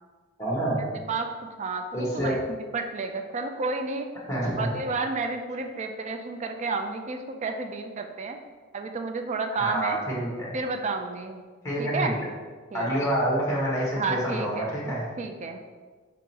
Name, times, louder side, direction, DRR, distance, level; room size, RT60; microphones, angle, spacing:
voice 1, 0.4-0.9 1.9-2.3 4.3-4.7 9.5-10.5 11.6-12.1 12.7-15.1, right 1 dB, 15° left, -4 dB, 1.3 m, -27 dB
voice 2, 0.9-1.3 1.6-4.1 4.6-8.4 8.7-10.0 10.5-11.4 11.8-12.2 12.7-12.9 14.0-14.7 15.2-15.6, right 3 dB, 35° right, 6 dB, 0.3 m, -31 dB
5.1 x 3.7 x 2.8 m, 1.5 s
head